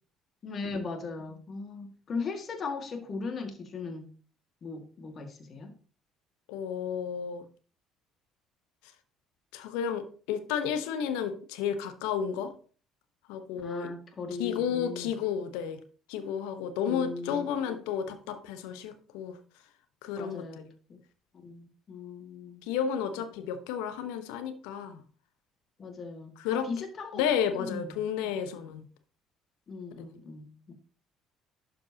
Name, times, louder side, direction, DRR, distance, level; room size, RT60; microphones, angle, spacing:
voice 1, 0.4-4.1 4.6-5.7 13.6-15.2 16.9-17.8 20.1-21.0 21.4-22.6 25.8-27.2 27.6-28.0 29.7-30.7, left 4 dB, 45° left, 2.0 m, -38 dB
voice 2, 6.5-7.4 9.5-12.5 13.3-13.9 14.4-15.8 16.1-19.4 20.0-20.7 22.7-25.0 26.4-26.6 27.1-28.8, left 8 dB, 75° left, 1.0 m, -32 dB
12.0 x 5.1 x 2.9 m
hypercardioid pair, 55°, 0 cm